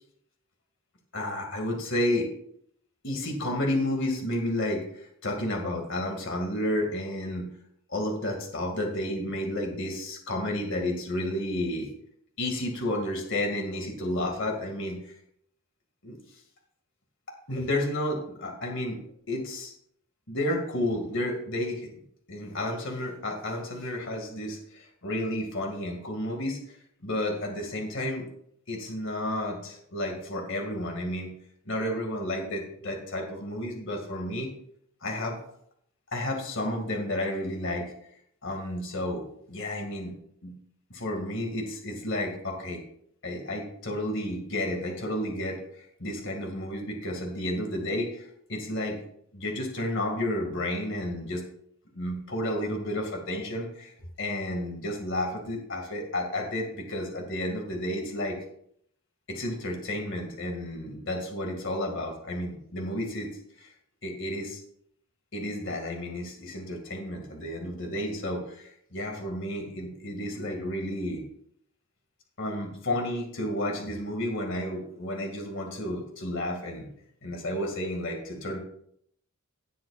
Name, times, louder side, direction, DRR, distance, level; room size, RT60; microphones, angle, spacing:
voice 1, 1.1-2.3 3.0-7.5 7.9-11.9 12.4-15.0 16.0-16.2 17.5-19.0 19.3-19.7 20.3-21.9 22.3-26.8 27.0-28.3 28.7-31.3 31.7-34.5 35.0-35.4 36.1-37.9 38.4-39.2 39.5-40.1 40.4-40.5 40.9-42.8 43.2-49.0 49.3-51.4 51.9-58.4 59.3-63.3 63.6-63.7 64.0-64.6 65.3-71.2 72.4-76.9 77.2-78.6, left 1 dB, 60° left, 2 dB, 2.2 m, -31 dB
17.0 x 7.7 x 2.5 m, 0.68 s
head